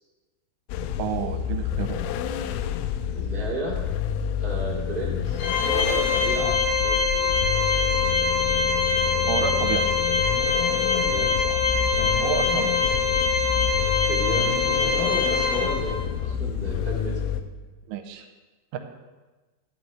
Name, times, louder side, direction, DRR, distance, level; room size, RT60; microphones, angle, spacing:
sound 1, 0.7-17.4, left 9 dB, 85° left, 3.2 m, -29 dB
voice 1, 1.0-2.0 9.2-9.9 12.0-12.7 17.9-18.2 18.7-18.8, right 8 dB, 90° right, 6 dB, 3.2 m, -30 dB
voice 2, 3.1-3.7 4.4-7.3 10.9-11.7 14.0-17.1, right 2 dB, 35° right, -6 dB, 0.8 m, -33 dB
Organ, 5.4-16.1, left 4 dB, 65° left, 3.0 m, -24 dB
13.0 x 11.5 x 3.3 m, 1.2 s
omnidirectional pair, 5.7 m